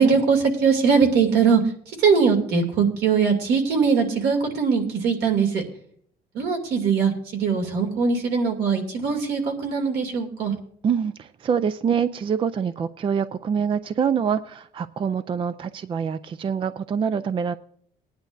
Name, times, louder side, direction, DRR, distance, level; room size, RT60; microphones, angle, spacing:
voice 1, 0.0-5.6 6.3-10.5, right 5 dB, 75° right, 3 dB, 2.6 m, -21 dB
voice 2, 10.8-17.5, right 7 dB, 30° right, 14 dB, 0.4 m, -25 dB
20.0 x 10.5 x 2.6 m, 0.63 s
cardioid pair, 110°, 17 cm